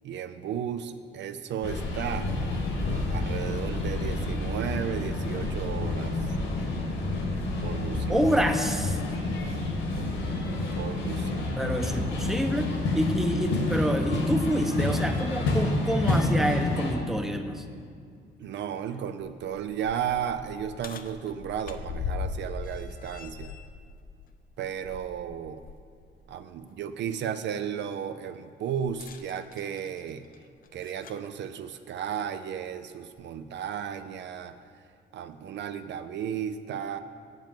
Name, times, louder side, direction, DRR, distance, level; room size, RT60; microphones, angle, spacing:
voice 1, 0.0-2.3 3.1-6.2 7.6-8.3 9.3-9.5 10.8-11.6 18.4-23.5 24.6-25.6 26.3-30.2 30.7-34.6 35.1-37.0, right 8 dB, 65° right, 10 dB, 0.4 m, -34 dB
sound 1, 1.6-16.9, left 2 dB, 80° left, 1.8 m, -29 dB
voice 2, 8.1-9.0 11.6-17.6, equal, ahead, 6 dB, 0.7 m, -27 dB
sound 2, 19.4-25.8 26.3-26.4 28.9-31.3 32.3-32.4 33.2-33.3, left 5 dB, 45° left, 0.6 m, -40 dB
7.4 x 5.3 x 7.4 m, 2.3 s
cardioid pair, 90°, 20 cm